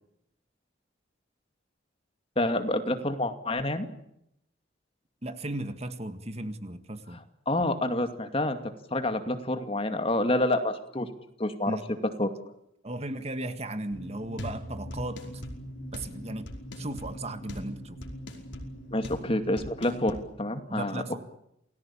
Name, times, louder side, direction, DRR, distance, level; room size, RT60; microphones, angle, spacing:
voice 1, 2.4-3.9 7.5-8.6 8.9-11.1 11.4-11.8 12.2-12.3 18.9-21.2, left 1 dB, 30° left, 8 dB, 2.4 m, -28 dB
voice 2, 5.2-7.2 11.7-11.8 12.8-15.4 15.9-18.0 20.7-21.2, right 1 dB, 35° right, 10 dB, 1.8 m, -36 dB
sound 1, 13.9-20.2, equal, 65° left, 5.3 m, -40 dB
29.0 x 19.0 x 8.8 m, 0.78 s
head